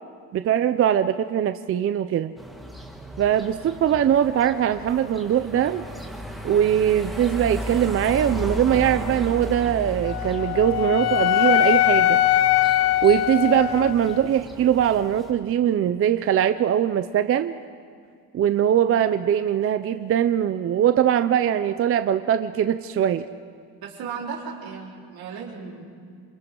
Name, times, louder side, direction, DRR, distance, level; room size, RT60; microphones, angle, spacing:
voice 1, 0.3-2.3 3.2-5.8 6.4-12.2 13.0-17.5 18.3-23.3, right 10 dB, 40° right, 11 dB, 0.5 m, -21 dB
sound 1, 2.4-15.3, equal, ahead, 1.6 m, -35 dB
Wind instrument woodwind instrument, 10.0-14.2, left 14 dB, 85° left, 0.7 m, -21 dB
voice 2, 23.8-25.8, right 6 dB, 75° right, -3 dB, 4.2 m, -35 dB
28.0 x 26.0 x 3.8 m, 2.2 s
cardioid pair, 170°, 37 cm